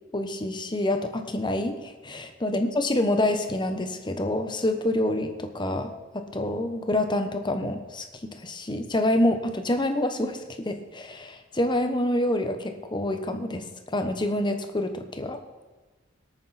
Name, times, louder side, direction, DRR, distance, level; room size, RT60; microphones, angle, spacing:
voice 1, 0.1-5.9 6.1-13.7 13.9-15.4, left 1 dB, 25° left, 7 dB, 1.0 m, -27 dB
18.0 x 9.0 x 4.2 m, 1.3 s
head